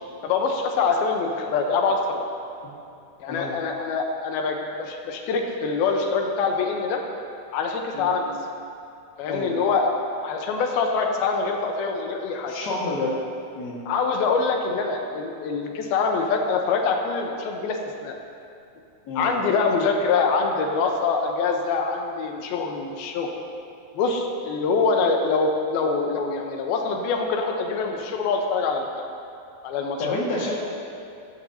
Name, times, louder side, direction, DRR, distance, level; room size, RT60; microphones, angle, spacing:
voice 1, 0.2-2.3 3.2-7.0 7.5-8.3 9.2-12.5 13.9-18.2 19.2-23.3 24.0-28.9 29.6-30.2, left 4 dB, 85° left, 2 dB, 2.8 m, -24 dB
voice 2, 9.2-9.6 12.5-13.2 13.5-13.8 19.0-19.3 30.0-30.7, left 2 dB, 40° left, -4 dB, 1.6 m, -29 dB
14.0 x 13.5 x 2.8 m, 2.6 s
omnidirectional pair, 4.3 m